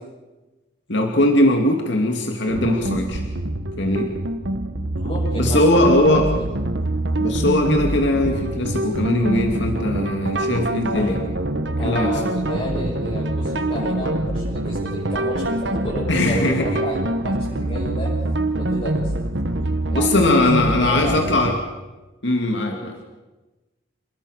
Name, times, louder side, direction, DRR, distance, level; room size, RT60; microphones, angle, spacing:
voice 1, 0.9-3.2 3.8-4.1 5.4-6.3 7.2-11.2 11.8-12.1 16.1-16.8 19.9-21.6 22.2-23.0, left 1 dB, 65° left, 3 dB, 2.6 m, -20 dB
sound 1, 2.5-21.5, right 1 dB, 65° right, 1.4 m, -24 dB
voice 2, 4.9-6.2 10.9-11.2 11.8-18.1 18.6-19.1 19.9-20.3 20.5-21.1 22.7-23.0, left 1 dB, 35° left, -7 dB, 6.7 m, -31 dB
29.5 x 20.0 x 6.7 m, 1.1 s
head